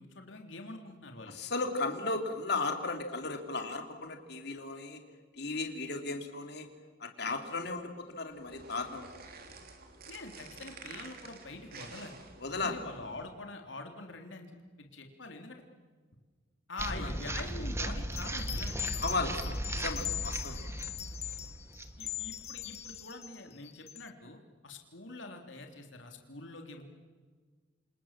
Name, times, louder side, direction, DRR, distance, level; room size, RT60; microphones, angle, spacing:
voice 1, 0.0-1.4 10.1-12.2 12.5-15.6 16.7-19.6 22.0-26.8, left 2 dB, 80° left, 3 dB, 3.2 m, -45 dB
voice 2, 1.3-5.0 5.3-6.7 7.0-9.1 12.4-12.8 16.9-17.1 19.0-19.3 19.8-20.6, left 3 dB, 60° left, 5 dB, 3.2 m, -35 dB
sound 1, 8.3-13.3, right 4 dB, 50° right, 3.3 m, -50 dB
sound 2, 16.8-23.0, right 1 dB, 15° right, 1.7 m, -37 dB
sound 3, 18.1-24.1, left 12 dB, 35° left, 0.8 m, -41 dB
29.0 x 27.0 x 7.4 m, 1.5 s
head